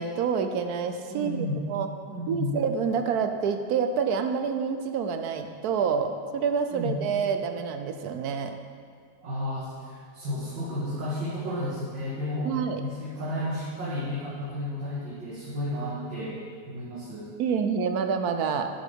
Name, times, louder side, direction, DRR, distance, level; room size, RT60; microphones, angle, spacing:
voice 1, 0.0-1.9 2.3-8.5 12.4-12.8 17.4-18.7, right 6 dB, 70° right, 7 dB, 1.0 m, -27 dB
voice 2, 1.1-1.6 2.1-2.5 6.7-6.9 9.2-16.4 16.7-17.3, left 1 dB, 90° right, -9 dB, 2.4 m, -32 dB
12.0 x 7.6 x 3.6 m, 2.1 s
omnidirectional pair, 1.9 m